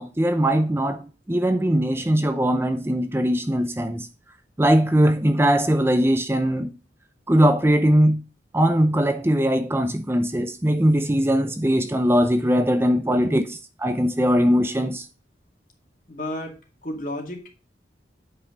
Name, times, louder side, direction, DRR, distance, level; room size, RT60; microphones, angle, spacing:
voice 1, 0.0-4.1 4.6-6.7 7.3-8.2 8.5-15.1, equal, 15° right, 0.6 m, -20 dB
voice 2, 16.1-16.6 16.8-17.5, left 1 dB, 45° left, 2.3 m, -32 dB
8.7 x 5.7 x 3.9 m
head